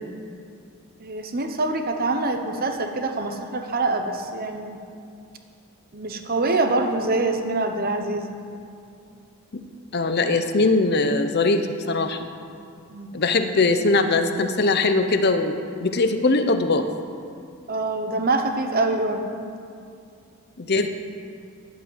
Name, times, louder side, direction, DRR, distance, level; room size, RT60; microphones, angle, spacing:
voice 1, 1.0-4.8 5.9-8.3 12.9-13.1 17.7-19.2, right 2 dB, 45° right, 5 dB, 1.0 m, -25 dB
voice 2, 9.9-12.3 13.1-16.9 20.6-20.9, left 3 dB, 45° left, 8 dB, 0.7 m, -21 dB
11.0 x 8.0 x 8.2 m, 2.4 s
head